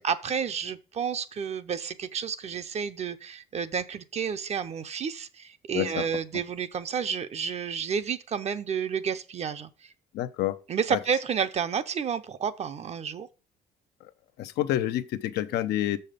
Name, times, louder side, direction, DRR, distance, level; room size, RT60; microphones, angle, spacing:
voice 1, 0.0-9.9 10.7-13.3, right 7 dB, 40° right, 0.7 m, -30 dB
voice 2, 5.7-6.1 10.1-10.6 10.9-11.0 14.4-16.0, left 13 dB, 80° left, 0.7 m, -28 dB
6.6 x 5.5 x 5.1 m
cardioid pair, 110°, 17 cm